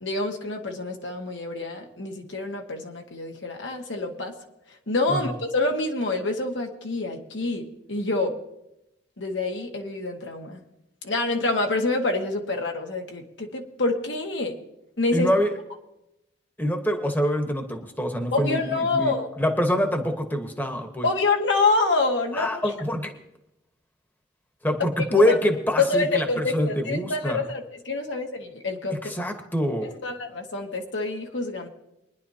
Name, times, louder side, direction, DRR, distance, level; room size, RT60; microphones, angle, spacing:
voice 1, 0.0-4.3 4.9-8.3 9.2-10.6 11.0-14.6 15.0-15.3 18.3-19.3 21.0-22.7 25.3-25.4 25.8-29.0 30.0-31.7, left 3 dB, 80° left, 2 dB, 1.6 m, -26 dB
voice 2, 15.1-15.5 16.6-21.1 22.3-23.1 24.6-27.4 28.9-29.9, equal, 10° left, 5 dB, 1.1 m, -25 dB
23.0 x 10.5 x 2.8 m, 0.87 s
head